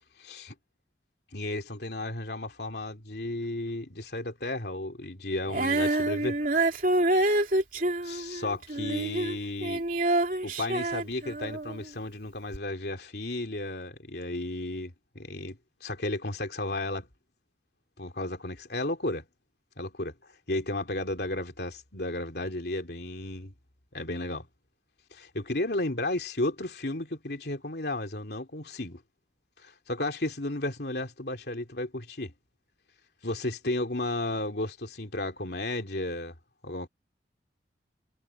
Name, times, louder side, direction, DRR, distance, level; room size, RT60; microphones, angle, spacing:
voice 1, 1.3-6.4 8.0-9.8 10.4-17.1 18.0-19.3 19.8-20.1 20.5-23.5 23.9-24.5 25.1-29.0 29.6-32.3 33.2-36.3 36.6-36.9, left 2 dB, 65° left, 2.9 m, -33 dB
Female singing, 5.5-11.8 12.5-12.6, right 2 dB, 45° right, 3.2 m, -27 dB
head